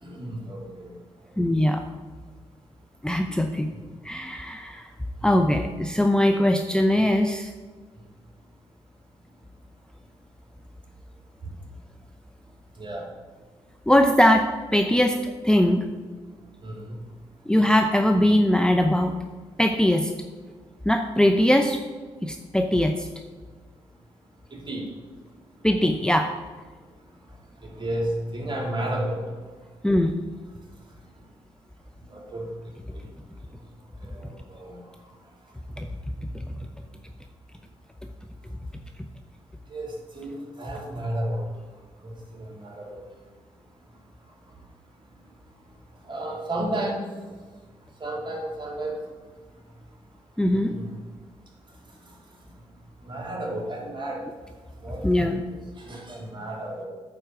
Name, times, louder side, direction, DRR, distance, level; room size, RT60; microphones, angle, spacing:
voice 1, 0.0-0.9 12.8-13.1 16.6-16.9 24.5-24.9 27.8-29.2 32.1-32.4 34.1-34.8 39.7-41.5 42.0-43.0 46.1-47.1 48.0-48.9 50.5-50.9 53.0-54.2 54.8-55.3 55.7-56.9, right 1 dB, 40° right, -1 dB, 3.0 m, -32 dB
voice 2, 1.4-1.8 3.0-3.7 4.0-4.9 5.2-7.5 13.9-14.5 14.7-15.8 17.5-19.1 19.6-20.1 20.9-21.8 22.2-23.1 25.6-26.3 29.8-30.2 50.4-50.8 55.0-55.4, left 1 dB, 5° left, 5 dB, 0.7 m, -21 dB
9.1 x 4.5 x 7.2 m, 1.4 s
supercardioid pair, 45°, 13 cm